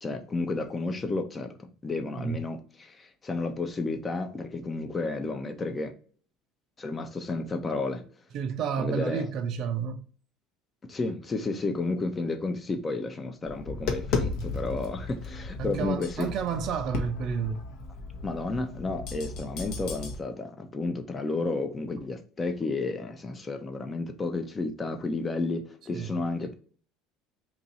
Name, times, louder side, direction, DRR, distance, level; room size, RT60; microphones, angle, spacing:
voice 1, 0.0-5.9 6.8-8.0 8.8-9.3 10.9-16.3 18.2-26.5, left 3 dB, 25° left, 0.7 m, -32 dB
voice 2, 8.3-10.1 15.6-17.6 25.9-26.2, right 7 dB, 55° right, 0.5 m, -31 dB
Tap, 13.5-20.1, left 3 dB, 65° left, 0.8 m, -35 dB
2.9 x 2.6 x 4.2 m
hypercardioid pair, 80°, 0 cm